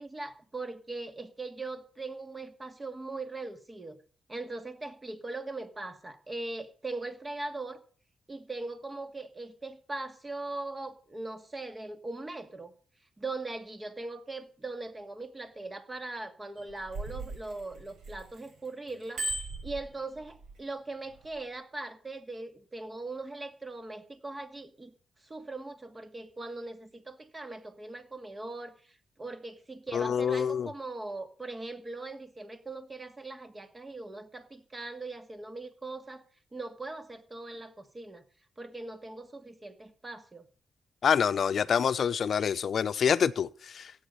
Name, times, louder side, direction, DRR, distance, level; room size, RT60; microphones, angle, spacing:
voice 1, 0.0-4.0 4.3-7.8 8.3-12.7 13.2-24.9 25.2-36.2 36.5-38.2 38.6-40.5, right 2 dB, 25° right, 2.1 m, -40 dB
Bicycle bell, 16.6-18.5 18.9-20.5 21.2-21.4, right 2 dB, 75° right, 4.4 m, -37 dB
voice 2, 29.9-30.7 41.0-43.9, left 7 dB, 65° left, 0.8 m, -26 dB
15.0 x 9.0 x 6.8 m
cardioid pair, 85°, 0 cm